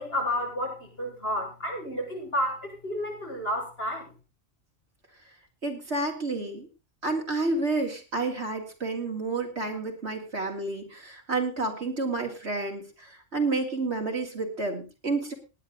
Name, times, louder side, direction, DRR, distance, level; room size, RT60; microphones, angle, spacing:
voice 1, 0.0-4.1, equal, 55° left, -1 dB, 6.5 m, -31 dB
voice 2, 5.6-6.7 7.0-15.3, right 3 dB, 65° right, 2 dB, 3.5 m, -30 dB
18.5 x 10.0 x 3.8 m, 0.30 s
omnidirectional pair, 1.2 m